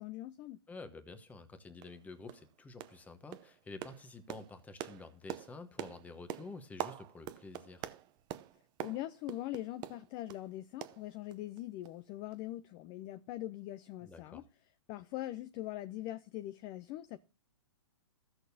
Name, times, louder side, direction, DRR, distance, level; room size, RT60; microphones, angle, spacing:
voice 1, 0.0-0.6 8.8-14.4 14.9-17.2, left 15 dB, 25° left, 0.4 m, -42 dB
voice 2, 0.7-7.9 14.0-14.5, left 3 dB, 10° left, 1.0 m, -50 dB
sound 1, 1.3-1.4 1.8-2.0 2.3-2.5 2.8-3.1 3.3-10.5 10.8-11.6 11.8-12.0 12.3-12.4, right 12 dB, 25° right, 0.6 m, -45 dB
16.0 x 6.4 x 2.7 m
hypercardioid pair, 140°, 16 cm